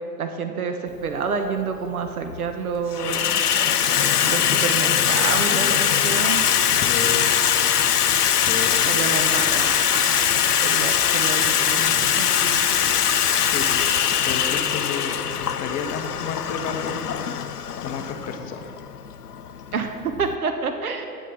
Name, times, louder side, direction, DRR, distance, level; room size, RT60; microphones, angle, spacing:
voice 1, 0.2-3.3 4.2-6.4 8.9-10.2 10.6-12.6 19.7-21.1, right 5 dB, 65° right, 6 dB, 0.8 m, -28 dB
Water tap faucet / Sink (filling or washing), 1.0-1.1 2.0-2.4 2.7-20.3, left 9 dB, 80° left, 0.6 m, -21 dB
voice 2, 6.7-7.3 8.4-8.8 13.4-13.8 14.2-17.3 17.8-18.7, left 6 dB, 20° left, 6 dB, 0.5 m, -31 dB
8.9 x 7.3 x 5.9 m, 2.5 s
figure-of-eight pair, 100°, 46 cm